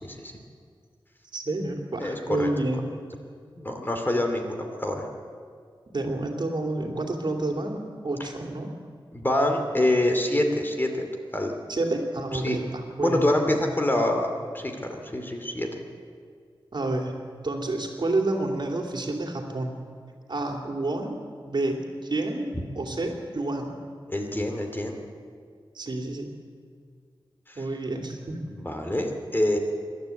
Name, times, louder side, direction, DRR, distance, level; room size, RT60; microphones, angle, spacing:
voice 1, 0.0-0.3 2.0-2.5 3.6-5.1 8.2-8.3 9.1-11.5 12.3-12.6 13.0-15.8 24.1-25.0 27.5-27.6 28.5-29.6, left 1 dB, 25° left, 3 dB, 2.6 m, -26 dB
voice 2, 1.3-2.9 5.9-8.7 11.7-13.3 16.7-17.2 17.4-19.8 20.3-21.2 21.5-22.5 22.8-23.7 25.7-26.3 27.6-28.5, right 2 dB, 55° right, 2 dB, 2.8 m, -29 dB
26.5 x 12.0 x 8.3 m, 2.1 s
wide cardioid pair, 100°, 9 cm